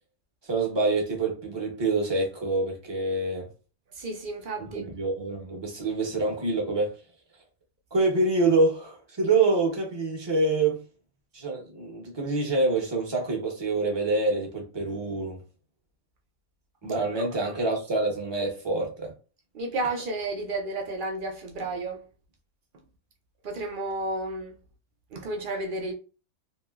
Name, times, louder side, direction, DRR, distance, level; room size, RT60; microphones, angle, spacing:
voice 1, 0.4-3.5 4.7-7.0 7.9-10.8 11.3-15.4 16.8-19.1, right 3 dB, 25° right, 0.7 m, -26 dB
voice 2, 3.9-4.8 17.4-17.5 19.5-22.0 23.4-24.5 25.1-25.9, right 2 dB, 70° right, 0.5 m, -32 dB
2.9 x 2.8 x 2.3 m
omnidirectional pair, 1.5 m